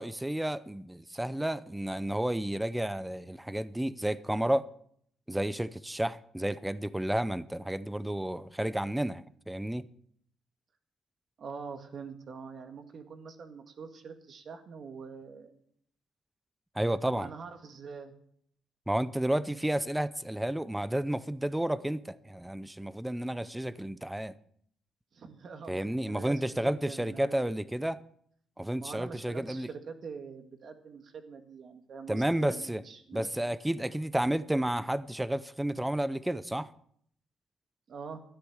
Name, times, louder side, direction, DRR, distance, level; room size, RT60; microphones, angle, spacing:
voice 1, 0.0-4.7 5.3-9.9 16.7-17.3 18.9-24.3 25.7-28.0 28.6-29.7 32.1-32.8 33.1-36.7, right 1 dB, 5° right, 0.7 m, -31 dB
voice 2, 11.4-15.6 17.0-18.1 25.1-27.6 28.8-33.4 37.9-38.2, right 5 dB, 55° right, 1.9 m, -44 dB
13.0 x 10.0 x 6.5 m
cardioid pair, 90°, 0 cm